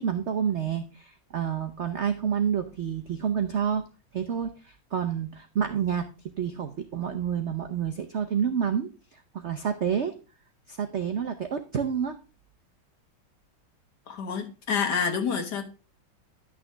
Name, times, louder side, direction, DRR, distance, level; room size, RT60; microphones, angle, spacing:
voice 1, 0.0-3.9 4.1-6.1 6.4-10.2 10.7-12.2, right 8 dB, 80° right, 0.6 m, -29 dB
voice 2, 14.1-15.6, left 6 dB, 55° left, 1.8 m, -28 dB
11.0 x 6.4 x 3.4 m
omnidirectional pair, 2.3 m